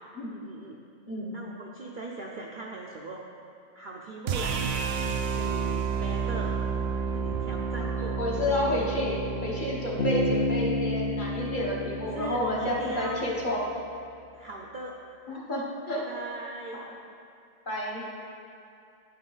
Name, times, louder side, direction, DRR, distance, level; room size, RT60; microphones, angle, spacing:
voice 1, 0.3-0.8 1.3-3.2 3.7-4.7 5.4-6.5 7.1-8.2 12.1-13.2 14.3-15.0 15.9-16.8, right 2 dB, 55° right, -2 dB, 0.6 m, -39 dB
voice 2, 1.1-1.4 8.2-13.7 15.3-16.0 17.7-18.0, left 1 dB, 45° left, -4 dB, 1.2 m, -30 dB
sound 1, 4.3-10.4, right 6 dB, 80° right, 0.9 m, -30 dB
Bass guitar, 10.0-13.6, left 1 dB, 65° left, 0.9 m, -31 dB
9.4 x 5.5 x 3.9 m, 2.5 s
omnidirectional pair, 1.2 m